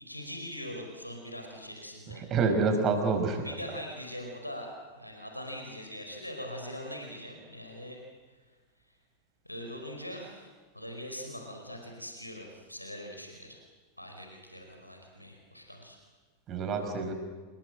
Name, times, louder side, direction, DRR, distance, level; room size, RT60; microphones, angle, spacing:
voice 1, 0.1-2.3 3.3-8.0 8.3-8.6 9.4-13.6 14.0-16.0, equal, 90° left, 2 dB, 4.9 m, -42 dB
voice 2, 2.3-3.5 16.5-17.1, right 4 dB, 30° right, 5 dB, 5.6 m, -27 dB
29.0 x 21.5 x 7.9 m, 1.4 s
figure-of-eight pair, 90°, 0 cm